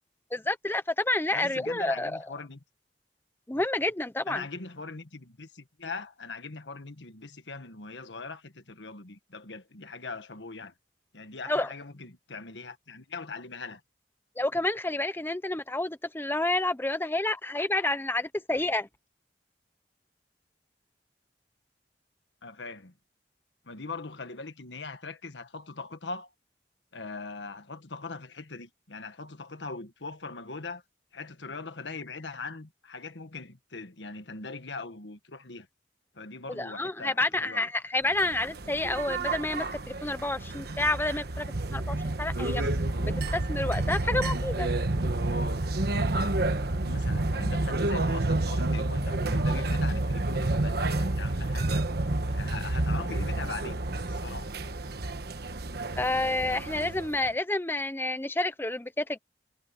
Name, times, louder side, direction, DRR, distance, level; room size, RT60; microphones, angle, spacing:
voice 1, 0.3-2.2 3.5-4.4 11.5-11.7 14.4-18.9 36.5-42.7 43.3-44.7 56.0-59.2, left 2 dB, 10° left, 0.8 m, -29 dB
voice 2, 1.3-2.6 4.3-10.7 11.1-13.8 22.4-22.9 23.7-26.3 26.9-30.8 31.1-35.7 36.1-37.7 38.2-38.3 46.8-51.9 52.3-53.8 54.1-54.5, left 3 dB, 90° left, 1.6 m, -41 dB
sound 1, 38.1-57.3, right 2 dB, 65° right, 1.3 m, -29 dB
head